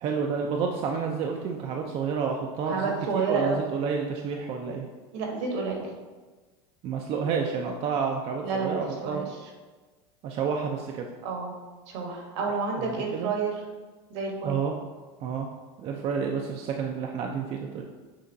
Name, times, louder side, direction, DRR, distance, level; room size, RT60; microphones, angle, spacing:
voice 1, 0.0-4.9 6.8-9.2 10.2-11.1 12.8-13.3 14.4-14.7 15.2-15.5 15.8-17.8, right 6 dB, 40° right, 2 dB, 0.4 m, -30 dB
voice 2, 2.7-3.6 5.1-5.9 7.1-7.4 8.4-9.5 11.2-11.6 11.9-13.6 14.1-14.6, right 4 dB, 70° right, 1 dB, 1.2 m, -30 dB
6.4 x 2.9 x 2.6 m, 1.3 s
supercardioid pair, 115°, 15 cm